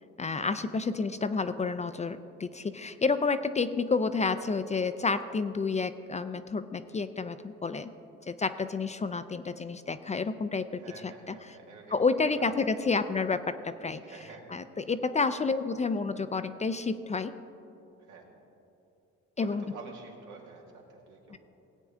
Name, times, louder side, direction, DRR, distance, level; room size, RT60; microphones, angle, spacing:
voice 1, 0.2-7.9 8.3-11.5 11.9-14.0 14.5-17.3 19.4-19.6 21.3-21.4, left 4 dB, 25° left, 11 dB, 0.4 m, -30 dB
voice 2, 10.8-12.5 14.0-14.9 18.0-18.2 19.4-21.4, right 4 dB, 85° right, -1 dB, 2.0 m, -49 dB
17.5 x 8.4 x 3.6 m, 2.8 s
cardioid pair, 90°, 30 cm